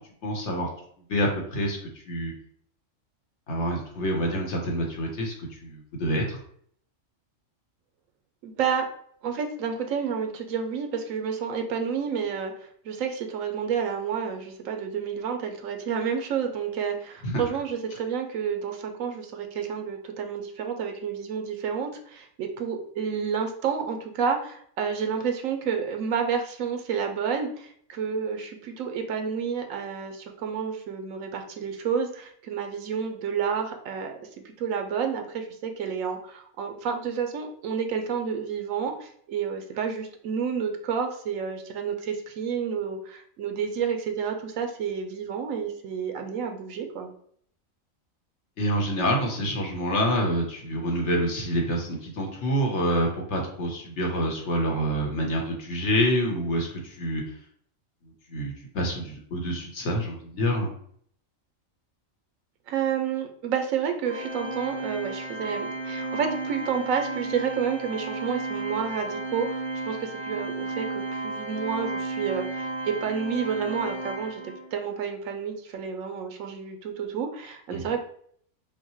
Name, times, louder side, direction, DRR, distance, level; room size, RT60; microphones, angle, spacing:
voice 1, 0.2-0.7 1.1-1.8 2.1-2.3 3.5-5.3 5.6-6.4 17.2-17.4 48.6-57.2 58.3-60.7 77.7-77.8, equal, 60° left, 1 dB, 1.2 m, -27 dB
voice 2, 8.4-8.9 9.2-47.1 62.7-74.4 74.7-78.0, right 6 dB, 80° right, 5 dB, 1.1 m, -30 dB
Organ, 64.1-74.8, right 2 dB, 55° right, 0.4 m, -33 dB
5.5 x 2.1 x 3.0 m, 0.62 s
omnidirectional pair, 1.4 m